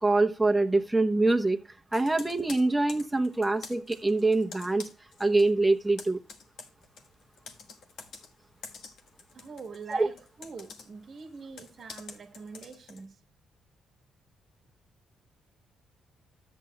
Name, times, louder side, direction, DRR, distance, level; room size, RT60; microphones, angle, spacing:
voice 1, 0.0-1.6 1.9-4.9 5.2-6.2 9.9-10.1, right 2 dB, 10° right, 0.9 m, -24 dB
Computer keyboard, 1.9-5.5 5.8-13.0, left 5 dB, 75° left, 1.4 m, -48 dB
voice 2, 9.3-13.2, right 5 dB, 50° right, 1.2 m, -44 dB
13.0 x 8.3 x 2.3 m
cardioid pair, 90°, 0 cm